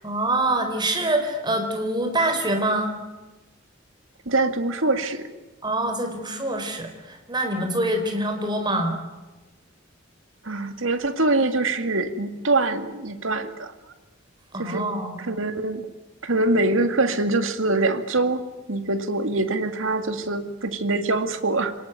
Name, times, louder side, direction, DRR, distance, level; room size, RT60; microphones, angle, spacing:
voice 1, 0.0-2.9 5.6-8.9 14.5-15.2, right 1 dB, 20° right, 5 dB, 4.5 m, -25 dB
voice 2, 4.3-5.3 10.4-13.7 14.6-14.9 15.2-15.9 16.2-21.7, right 2 dB, 80° right, 8 dB, 2.2 m, -24 dB
26.5 x 18.5 x 9.4 m, 1.2 s
head